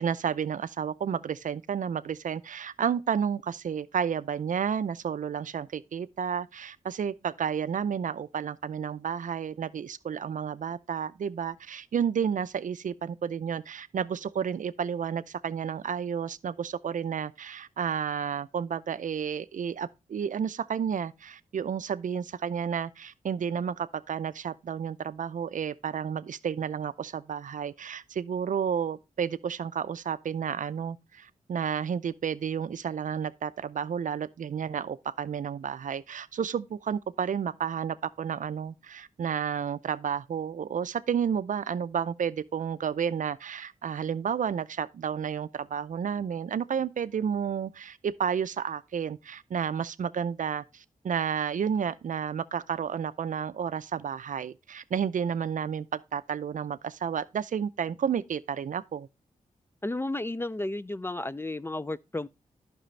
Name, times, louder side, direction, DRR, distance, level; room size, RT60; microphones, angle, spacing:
voice 1, 0.0-59.1, right 7 dB, 65° right, 0.5 m, -31 dB
voice 2, 59.8-62.3, left 2 dB, 15° left, 0.3 m, -33 dB
10.0 x 6.1 x 3.2 m
cardioid pair, 50°, 14 cm